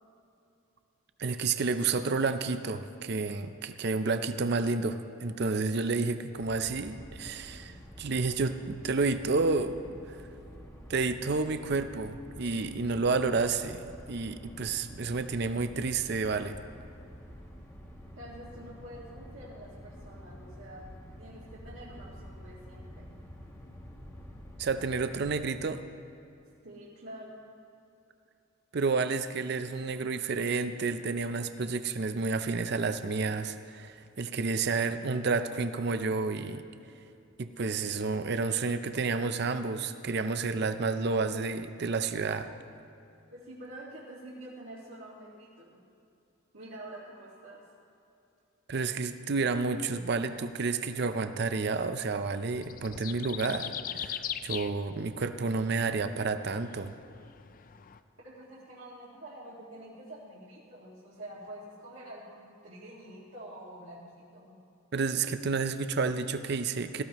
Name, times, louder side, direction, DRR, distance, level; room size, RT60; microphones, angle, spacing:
voice 1, 1.2-9.8 10.1-10.2 10.9-16.6 24.6-25.8 28.7-36.6 37.4-42.5 48.7-56.9 64.9-67.0, right 4 dB, 50° right, 10 dB, 0.5 m, -30 dB
sound 1, 6.4-25.5, equal, 15° left, 1.1 m, -48 dB
voice 2, 18.2-20.9 21.2-23.1 26.6-27.4 43.3-45.8 46.5-47.6 58.2-64.6, right 1 dB, 70° right, -8 dB, 2.0 m, -47 dB
sound 2, 52.5-58.0, left 9 dB, 40° left, 0.3 m, -41 dB
17.5 x 14.5 x 3.0 m, 2.6 s
head